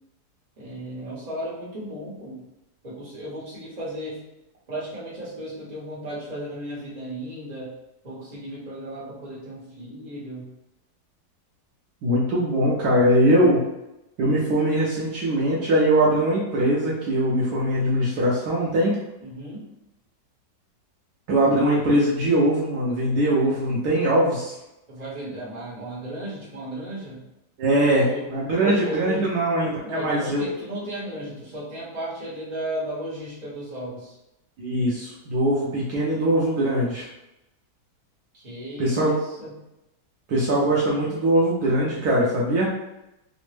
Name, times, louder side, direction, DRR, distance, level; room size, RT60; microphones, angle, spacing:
voice 1, 0.6-2.4 2.8-4.2 4.7-7.7 8.0-10.5 19.2-19.6 24.9-27.2 27.9-28.3 28.6-29.4 29.8-34.1 38.3-39.5, equal, 30° right, -7 dB, 0.8 m, -34 dB
voice 2, 12.0-13.6 14.2-19.0 21.3-24.6 27.6-30.4 34.6-37.1 38.8-39.1 40.3-42.7, right 1 dB, 70° right, -5 dB, 1.1 m, -21 dB
3.4 x 2.0 x 3.2 m, 0.91 s
omnidirectional pair, 1.9 m